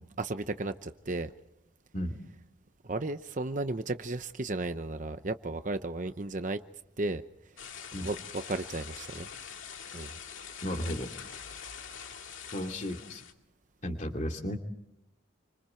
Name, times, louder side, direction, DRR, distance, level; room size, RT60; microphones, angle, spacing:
voice 1, 0.2-1.3 2.9-6.6 7.0-7.2 8.0-9.3 9.9-10.1, right 2 dB, 40° right, 9 dB, 0.8 m, -34 dB
sound 1, 7.6-13.3, left 7 dB, 90° left, 2.2 m, -44 dB
voice 2, 10.6-11.1 12.5-13.2 13.8-14.6, equal, 40° left, 4 dB, 2.7 m, -34 dB
29.0 x 25.5 x 4.5 m, 0.87 s
head